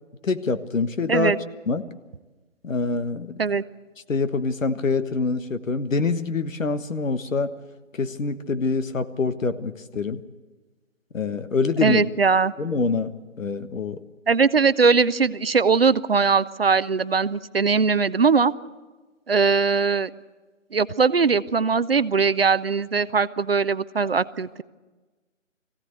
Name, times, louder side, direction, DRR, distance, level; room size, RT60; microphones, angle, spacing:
voice 1, 0.2-1.4 1.7-1.9 2.6-3.3 4.1-7.5 7.9-10.2 11.1-12.0 12.6-14.0, left 4 dB, 75° left, 11 dB, 1.4 m, -25 dB
voice 2, 11.8-12.5 14.3-18.5 19.3-20.1 20.7-24.6, right 5 dB, 50° right, 15 dB, 0.6 m, -20 dB
21.5 x 16.0 x 8.1 m, 1.2 s
hypercardioid pair, 170°, 39 cm